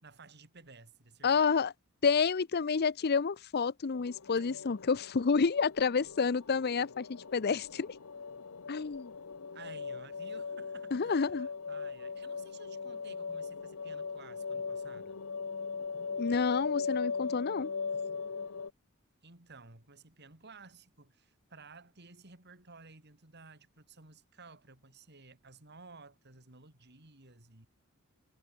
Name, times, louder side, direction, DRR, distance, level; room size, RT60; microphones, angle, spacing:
voice 1, 0.0-1.6 4.4-4.5 9.5-15.2 19.2-27.7, right 4 dB, 55° right, 4.0 m, -55 dB
voice 2, 1.2-1.7 2.0-7.9 8.7-9.1 10.9-11.5 16.2-17.7, left 5 dB, 50° left, 0.6 m, -29 dB
sound 1, 3.9-18.7, left 5 dB, 85° left, 0.9 m, -39 dB
head